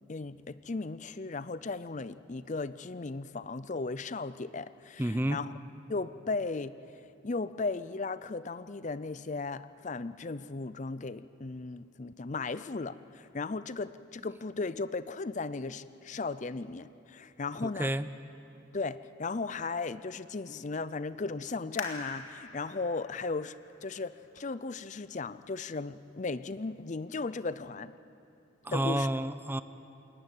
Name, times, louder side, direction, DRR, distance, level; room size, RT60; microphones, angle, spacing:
voice 1, 0.1-5.5 5.9-6.8 7.2-17.9 18.7-23.6 23.8-27.9 28.7-29.1, left 3 dB, 35° left, 15 dB, 0.5 m, -36 dB
voice 2, 5.0-5.4 17.6-18.1 28.6-29.6, right 1 dB, 10° right, 13 dB, 0.5 m, -30 dB
sound 1, 21.8-25.1 25.7-25.8 26.5-26.8 27.2-27.3, left 4 dB, 90° left, 2.6 m, -45 dB
22.0 x 18.5 x 9.1 m, 2.8 s
head